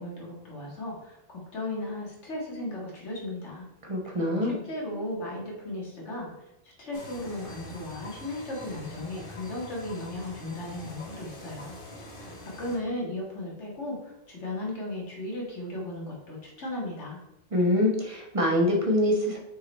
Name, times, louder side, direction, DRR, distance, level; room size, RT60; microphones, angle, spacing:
voice 1, 0.0-3.7 4.4-6.3 6.8-11.7 12.4-17.2, left 1 dB, 70° left, -4 dB, 2.2 m, -36 dB
voice 2, 3.8-4.6 17.5-19.4, left 1 dB, 30° right, 0 dB, 1.2 m, -24 dB
sound 1, 6.9-12.8, left 1 dB, 45° left, 1.3 m, -44 dB
6.1 x 3.8 x 4.3 m, 0.85 s
omnidirectional pair, 1.3 m